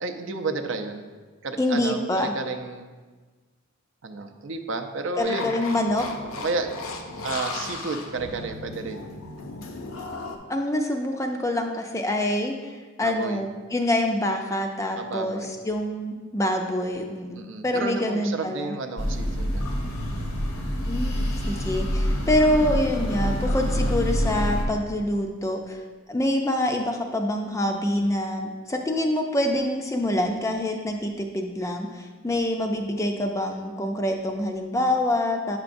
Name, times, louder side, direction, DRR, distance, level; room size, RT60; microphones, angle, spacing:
voice 1, 0.0-1.0 1.4-2.9 4.0-5.5 6.4-6.7 7.2-9.1 13.0-13.4 15.0-15.6 17.3-19.7, right 3 dB, 60° right, 6 dB, 0.5 m, -31 dB
voice 2, 1.6-2.3 5.2-6.1 10.5-12.7 13.0-17.3 17.6-18.7 20.9-21.2 21.5-25.8 26.1-35.6, left 1 dB, 15° left, 3 dB, 0.4 m, -26 dB
sound 1, 5.2-10.4, left 3 dB, 70° left, 0.6 m, -36 dB
sound 2, 19.0-24.6, equal, 85° left, 1.0 m, -26 dB
8.3 x 5.8 x 2.6 m, 1.4 s
head